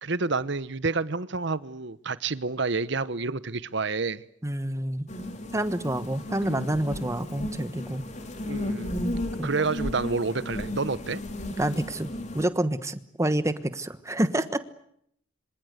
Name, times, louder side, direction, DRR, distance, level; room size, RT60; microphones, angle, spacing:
voice 1, 0.0-4.2 6.4-6.6 8.4-8.9 9.4-11.2, right 4 dB, 60° right, 1.0 m, -29 dB
voice 2, 4.4-5.1 5.5-8.0 9.4-9.5 11.6-12.1 12.3-14.6, right 1 dB, 15° right, 1.2 m, -28 dB
sound 1, 5.1-12.4, left 1 dB, 35° left, 3.4 m, -34 dB
27.0 x 25.0 x 8.1 m
head